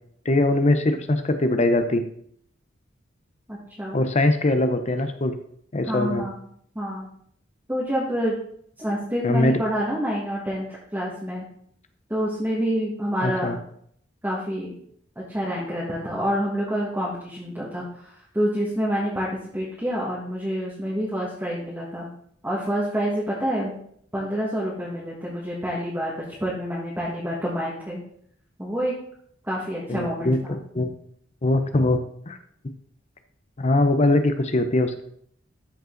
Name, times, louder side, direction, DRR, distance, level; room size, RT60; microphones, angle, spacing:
voice 1, 0.2-2.0 3.9-5.3 5.7-6.2 9.2-9.5 13.2-13.6 29.9-30.4 30.7-30.9 31.4-32.0 32.3-32.4 33.6-35.0, left 2 dB, 35° left, 8 dB, 0.7 m, -21 dB
voice 2, 3.5-4.0 5.9-6.4 6.8-7.1 7.7-8.4 8.8-11.5 12.1-13.6 14.2-14.7 15.2-22.1 22.4-23.8 24.1-28.0 28.6-29.0 29.4-30.6, equal, 10° right, -6 dB, 1.7 m, -27 dB
13.0 x 5.4 x 3.9 m, 0.66 s
head